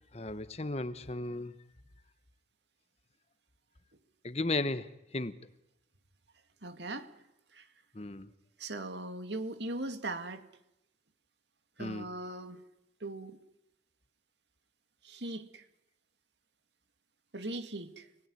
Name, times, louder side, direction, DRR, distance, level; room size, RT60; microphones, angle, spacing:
voice 1, 0.0-1.5 4.2-5.4 7.9-8.3 11.8-12.1, left 2 dB, 35° left, 1.1 m, -35 dB
voice 2, 6.6-7.1 7.5-7.7 8.6-10.4 11.8-12.6 13.0-13.4 15.0-15.6 17.3-18.1, right 2 dB, 70° right, 2.2 m, -39 dB
29.5 x 19.5 x 9.6 m
head